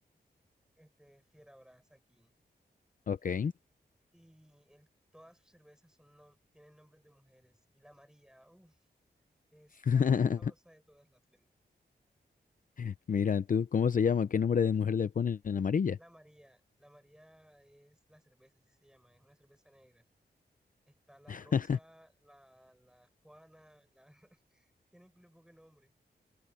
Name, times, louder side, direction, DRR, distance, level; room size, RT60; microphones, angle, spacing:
voice 1, 0.8-2.3 4.1-8.9 9.5-11.5 16.0-20.1 20.9-25.9, equal, 5° right, 7.3 m, -61 dB
voice 2, 3.1-3.5 9.8-10.5 12.8-16.0 21.3-21.8, left 7 dB, 50° left, 0.6 m, -28 dB
wide cardioid pair, 130°, 18 cm